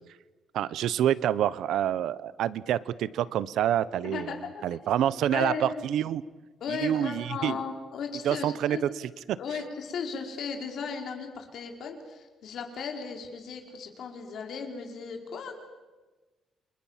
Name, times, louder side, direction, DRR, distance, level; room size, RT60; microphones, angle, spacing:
voice 1, 0.5-4.4 4.6-6.2 6.7-7.6 8.2-8.9 9.3-9.4, right 11 dB, 80° right, 18 dB, 0.9 m, -27 dB
voice 2, 4.0-4.6 5.3-5.8 6.6-8.8 9.4-15.5, left 5 dB, 60° left, 3 dB, 4.9 m, -36 dB
29.5 x 26.0 x 7.5 m, 1.2 s
cardioid pair, 160°, 0 cm